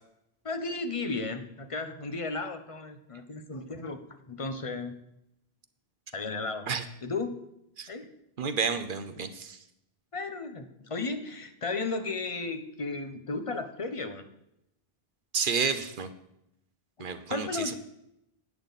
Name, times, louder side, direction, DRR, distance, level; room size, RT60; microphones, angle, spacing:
voice 1, 0.4-4.0 4.3-5.0 6.1-6.7 7.0-7.4 7.9-8.1 10.1-14.2 17.0-17.7, left 3 dB, 35° left, 8 dB, 0.9 m, -34 dB
voice 2, 8.4-9.6 15.3-16.1 17.0-17.7, right 5 dB, 60° right, 10 dB, 0.9 m, -30 dB
10.5 x 8.9 x 4.0 m, 0.82 s
omnidirectional pair, 1.0 m